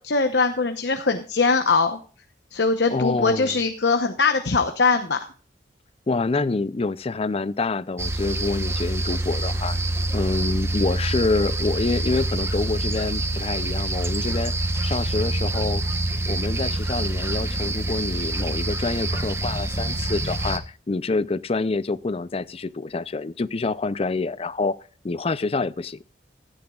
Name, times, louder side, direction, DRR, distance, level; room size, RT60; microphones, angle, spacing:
voice 1, 0.0-2.0 2.5-5.2, left 4 dB, 75° left, 0.9 m, -21 dB
voice 2, 2.9-3.6 6.1-9.8 10.1-15.8 16.3-24.8 25.0-26.0, left 3 dB, 35° left, 0.5 m, -27 dB
sound 1, 8.0-20.6, right 1 dB, 15° right, 1.0 m, -26 dB
15.5 x 12.0 x 2.4 m
head